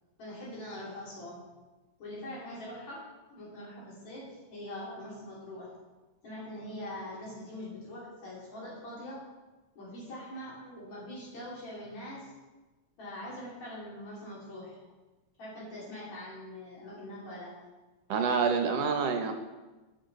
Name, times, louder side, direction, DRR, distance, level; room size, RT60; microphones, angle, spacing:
voice 1, 0.2-1.4 2.0-5.8 6.2-9.3 9.8-12.3 13.0-14.8 15.4-17.6, left 1 dB, 65° left, -7 dB, 4.4 m, -43 dB
voice 2, 18.1-19.3, right 5 dB, 65° right, 5 dB, 1.8 m, -27 dB
16.5 x 6.2 x 4.1 m, 1.2 s
omnidirectional pair, 3.4 m